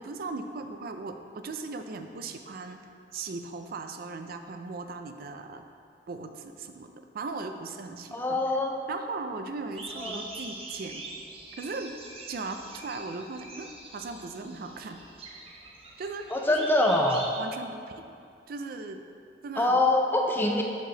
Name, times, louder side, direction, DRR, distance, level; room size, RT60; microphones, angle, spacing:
voice 1, 0.0-2.8 3.1-5.6 6.1-8.4 8.9-11.0 11.6-12.0 12.3-15.0 16.0-16.7 17.4-18.1 18.5-19.0 19.4-19.8, right 3 dB, 55° right, 6 dB, 0.4 m, -38 dB
voice 2, 8.1-8.7 10.0-10.2 16.3-17.3 19.6-20.6, left 2 dB, 10° left, 1 dB, 0.3 m, -24 dB
sound 1, 9.7-17.3, right 2 dB, 35° right, 0.8 m, -43 dB
5.9 x 5.2 x 3.9 m, 2.4 s
head